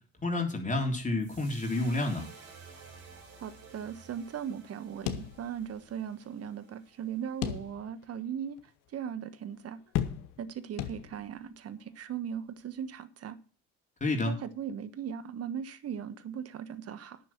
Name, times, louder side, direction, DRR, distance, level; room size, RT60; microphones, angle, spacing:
voice 1, 0.2-2.3 14.0-14.3, left 2 dB, 25° left, 3.3 m, -29 dB
sound 1, 1.2-7.5, right 4 dB, 65° right, 4.0 m, -53 dB
voice 2, 3.4-8.6 8.9-9.8 10.4-13.4 14.3-17.2, right 8 dB, 50° right, 1.3 m, -38 dB
sound 2, 5.1-5.9 6.2-6.3 7.4-8.1 8.6-8.7 9.9-10.5 10.8-11.4, left 10 dB, 70° left, 1.1 m, -35 dB
10.5 x 6.1 x 7.3 m
hypercardioid pair, 60°, 32 cm